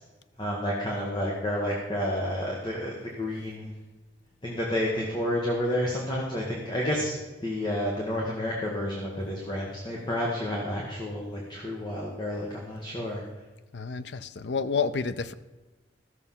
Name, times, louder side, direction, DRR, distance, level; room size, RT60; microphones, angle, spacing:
voice 1, 0.4-3.7 4.4-7.1 7.4-13.2, left 1 dB, 25° left, -2 dB, 1.6 m, -30 dB
voice 2, 13.7-15.3, left 5 dB, 75° left, 13 dB, 0.5 m, -29 dB
13.5 x 6.8 x 5.7 m, 1.2 s
head